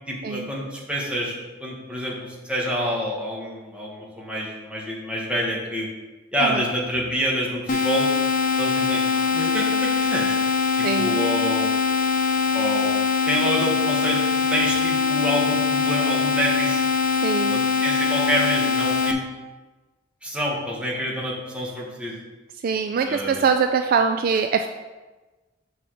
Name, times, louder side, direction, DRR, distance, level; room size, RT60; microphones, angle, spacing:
voice 1, 0.1-5.9 6.3-8.1 8.6-10.4 10.8-11.7 12.5-12.9 13.3-14.2 14.5-16.8 17.4-19.2 20.2-22.1 23.0-23.4, equal, 5° right, -4 dB, 1.4 m, -27 dB
sound 1, 7.7-19.1, left 5 dB, 45° left, 0.7 m, -22 dB
voice 2, 10.8-11.1 17.2-17.7 22.6-24.7, right 6 dB, 45° right, 6 dB, 0.3 m, -23 dB
6.7 x 3.6 x 6.3 m, 1.2 s
head